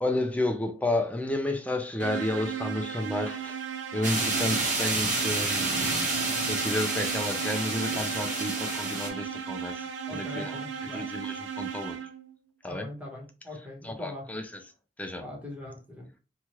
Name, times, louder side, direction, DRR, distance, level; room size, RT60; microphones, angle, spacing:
voice 1, 0.0-3.6 3.9-5.9 6.5-12.0 12.6-12.9 13.8-14.6 15.0-15.2, left 1 dB, 10° left, 0.4 m, -31 dB
sound 1, 2.0-12.3, right 7 dB, 90° right, 0.5 m, -36 dB
sound 2, 4.0-9.1, right 2 dB, 45° right, 0.9 m, -29 dB
voice 2, 10.1-11.1 12.7-14.3 15.2-16.1, left 2 dB, 10° right, 1.0 m, -41 dB
2.9 x 2.3 x 2.9 m
head